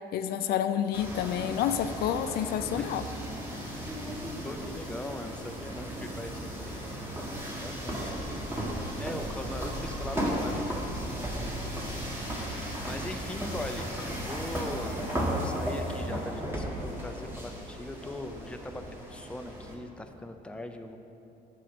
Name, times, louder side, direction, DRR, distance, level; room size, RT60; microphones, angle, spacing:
voice 1, 0.1-3.0, left 9 dB, 65° left, 10 dB, 0.4 m, -29 dB
sound 1, 0.9-19.7, equal, 15° right, 1.8 m, -35 dB
voice 2, 4.0-6.8 7.5-8.4 9.0-11.1 12.3-21.0, left 1 dB, 5° left, 5 dB, 0.6 m, -41 dB
9.2 x 6.3 x 6.0 m, 2.9 s
cardioid pair, 110°, 17 cm